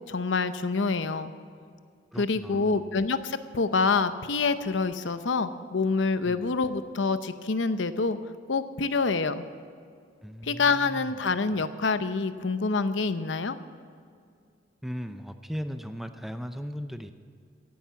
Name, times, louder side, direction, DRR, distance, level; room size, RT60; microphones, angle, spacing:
voice 1, 0.1-1.3 2.2-8.2 8.5-9.4 10.4-13.6, left 4 dB, 75° left, 11 dB, 0.7 m, -26 dB
voice 2, 2.1-2.9 6.3-6.5 10.2-11.2 14.8-17.1, equal, ahead, 8 dB, 0.5 m, -37 dB
17.0 x 10.5 x 7.1 m, 2.2 s
head